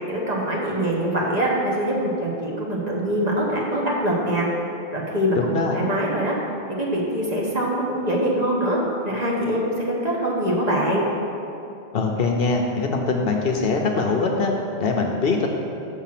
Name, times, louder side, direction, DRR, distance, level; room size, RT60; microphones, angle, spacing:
voice 1, 0.1-4.5 4.9-5.4 5.7-6.3 6.8-8.8 9.0-11.0, right 1 dB, 35° right, -4 dB, 1.3 m, -23 dB
voice 2, 5.3-5.8 11.9-14.5 14.8-15.5, left 4 dB, 60° left, 2 dB, 0.9 m, -22 dB
7.0 x 6.0 x 5.8 m, 2.7 s
omnidirectional pair, 1.1 m